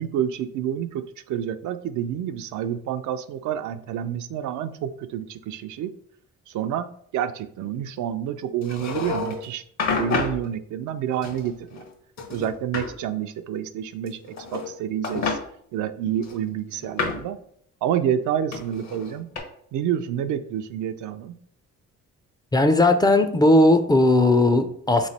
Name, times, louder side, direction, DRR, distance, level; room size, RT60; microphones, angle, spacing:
voice 1, 0.0-5.9 6.5-6.9 7.1-9.6 10.0-11.8 12.3-15.4 15.7-17.4 17.8-19.3 19.7-21.3, right 10 dB, 75° right, 10 dB, 0.4 m, -28 dB
sound 1, 8.6-9.4 9.8-10.4 11.2-11.9 12.2-12.9 14.1-14.7 15.0-15.4 16.2-17.3 18.5-19.4, left 4 dB, 65° left, 1.1 m, -29 dB
voice 2, 22.5-25.1, left 2 dB, 15° left, 8 dB, 0.4 m, -17 dB
3.5 x 3.1 x 4.1 m, 0.64 s
cardioid pair, 90°, 30 cm